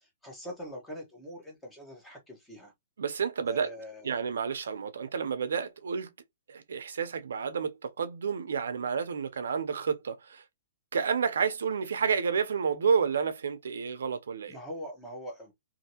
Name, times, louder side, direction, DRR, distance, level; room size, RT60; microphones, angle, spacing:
voice 1, 0.0-2.7 3.5-4.1 14.5-15.5, equal, 5° left, 0.8 m, -42 dB
voice 2, 3.0-3.7 4.0-6.1 6.5-10.4 10.9-14.6, right 6 dB, 85° right, 0.6 m, -30 dB
2.7 x 2.6 x 2.8 m
hypercardioid pair, 165°, 0 cm